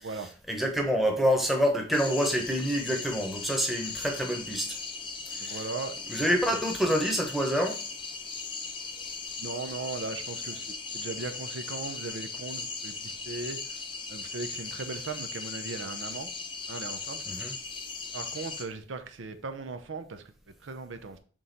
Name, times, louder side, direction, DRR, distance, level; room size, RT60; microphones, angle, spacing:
voice 1, 0.5-4.8 5.3-5.6 6.1-7.8 17.3-17.5, equal, ahead, 0.9 m, -27 dB
sound 1, 1.9-18.6, left 4 dB, 25° left, 0.6 m, -38 dB
voice 2, 5.4-5.9 6.5-6.6 9.4-13.8 14.1-16.3 16.7-17.2 18.1-20.2 20.6-21.2, right 3 dB, 90° right, 0.7 m, -38 dB
6.1 x 3.8 x 4.0 m
head